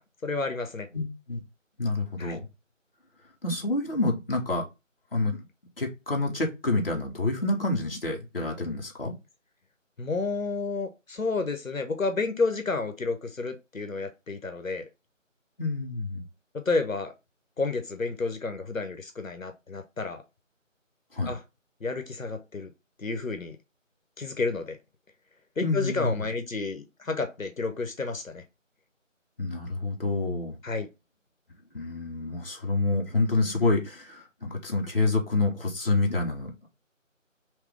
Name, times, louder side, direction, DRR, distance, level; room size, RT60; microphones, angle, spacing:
voice 1, 0.2-0.9 2.2-2.4 10.0-14.9 16.5-17.1 17.6-20.2 21.3-21.4 21.8-22.7 23.0-23.6 24.2-24.8 25.6-28.4 30.6-30.9, left 3 dB, 80° left, 0.9 m, -30 dB
voice 2, 0.9-1.4 1.8-2.4 3.4-4.6 5.1-5.4 5.8-9.1 15.6-16.2 21.1-21.4 25.6-26.1 29.4-30.6 31.7-36.7, left 2 dB, 45° left, 1.0 m, -28 dB
3.4 x 3.0 x 3.3 m
figure-of-eight pair, 165°, 39 cm